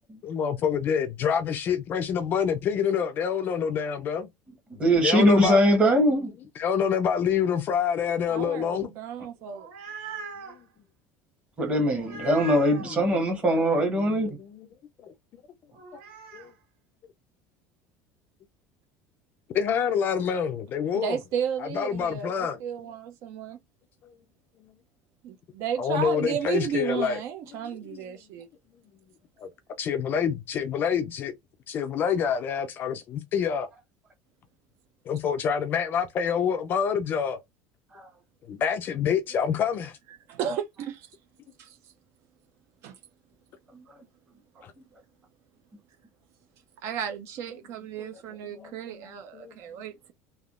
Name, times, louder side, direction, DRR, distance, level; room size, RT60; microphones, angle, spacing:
voice 1, 0.2-4.3 5.0-5.6 6.6-8.9 12.8-13.0 13.9-14.7 15.0-15.1 16.3-16.5 19.5-21.2 21.6-22.6 24.0-24.1 25.8-27.2 27.9-28.0 29.4-29.5 29.8-31.3 31.7-33.7 35.1-37.4 38.5-40.0 44.6-44.7 48.0-48.1 48.5-48.7 49.3-49.5, left 7 dB, 30° left, 0.4 m, -27 dB
voice 2, 4.7-6.3 11.6-14.4 37.9-38.1 43.7-43.8, equal, 20° right, 1.0 m, -22 dB
voice 3, 8.3-9.7 20.9-23.6 25.2-28.5 40.3-41.1 41.6-41.8 42.8-43.0 46.8-50.1, right 8 dB, 45° right, 0.4 m, -33 dB
sound 1, 9.4-10.6 12.0-12.9 15.8-16.5, right 4 dB, 85° right, 1.7 m, -40 dB
3.3 x 2.3 x 2.3 m
cardioid pair, 175°, 6 cm